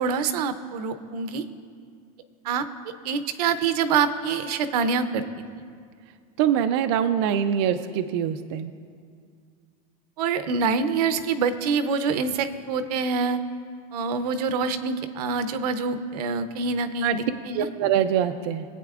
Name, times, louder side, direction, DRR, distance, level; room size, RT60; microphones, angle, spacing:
voice 1, 0.0-1.4 2.4-2.7 3.0-5.2 10.2-13.4 13.9-17.7, right 5 dB, 75° right, 11 dB, 0.7 m, -25 dB
voice 2, 6.4-8.7 17.0-17.2 17.5-18.6, right 9 dB, 45° right, 7 dB, 0.4 m, -24 dB
22.0 x 8.4 x 2.4 m, 2.2 s
supercardioid pair, 175°, 20 cm